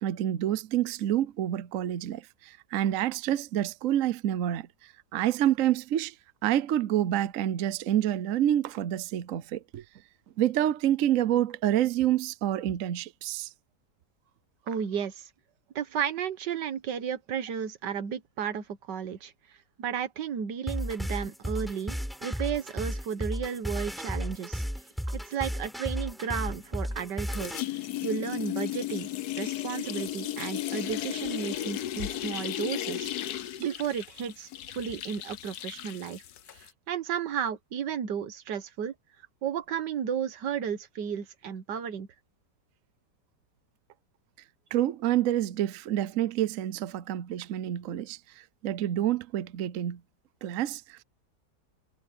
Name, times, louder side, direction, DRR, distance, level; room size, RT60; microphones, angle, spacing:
voice 1, 0.0-6.1 6.4-9.8 10.4-13.5 33.6-33.7 44.7-50.0 50.4-51.0, right 12 dB, 60° right, 1.0 m, -28 dB
voice 2, 14.7-15.3 15.7-19.3 19.8-24.6 25.1-27.5 28.0-29.1 29.4-33.1 33.6-36.2 36.5-38.9 39.4-42.1, right 8 dB, 80° right, 1.8 m, -33 dB
sound 1, 20.7-27.6, equal, ahead, 5.7 m, -34 dB
sound 2, 26.5-27.1 27.3-36.7, left 13 dB, 65° left, 1.2 m, -35 dB
omnidirectional pair, 1.9 m